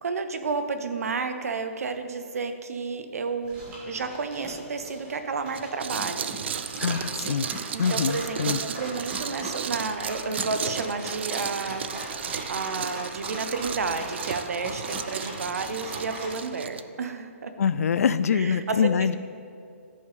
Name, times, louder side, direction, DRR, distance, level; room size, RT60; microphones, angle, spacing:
voice 1, 0.0-6.3 7.7-11.8 12.5-17.5 18.3-19.2, right 4 dB, 80° right, 9 dB, 0.8 m, -31 dB
Dog, 3.4-16.3, right 1 dB, 15° right, 1.2 m, -39 dB
sound 1, 5.5-16.8, right 8 dB, 50° right, 0.3 m, -34 dB
voice 2, 6.8-7.5 7.8-8.6 17.6-19.2, left 7 dB, 80° left, 15 dB, 0.4 m, -24 dB
13.0 x 5.4 x 3.4 m, 2.5 s
hypercardioid pair, 170°, 8 cm